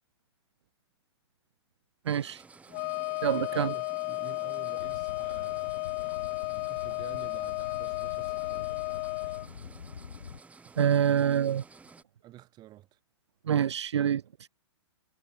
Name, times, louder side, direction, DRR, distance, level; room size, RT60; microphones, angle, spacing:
sound 1, 2.0-12.0, right 4 dB, 10° right, 6.7 m, -53 dB
voice 1, 2.1-2.4 3.2-3.7 10.8-11.6 13.5-14.2, right 9 dB, 70° right, 0.6 m, -26 dB
Wind instrument woodwind instrument, 2.7-9.5, left 40 dB or more, 35° left, 1.3 m, -33 dB
voice 2, 3.2-8.8 9.2-10.0 10.6-10.8 12.2-13.0, right 15 dB, 30° right, 3.9 m, -50 dB
sound 2, 4.8-10.4, left 7 dB, 75° left, 2.8 m, -46 dB
figure-of-eight pair, 115°, 15 cm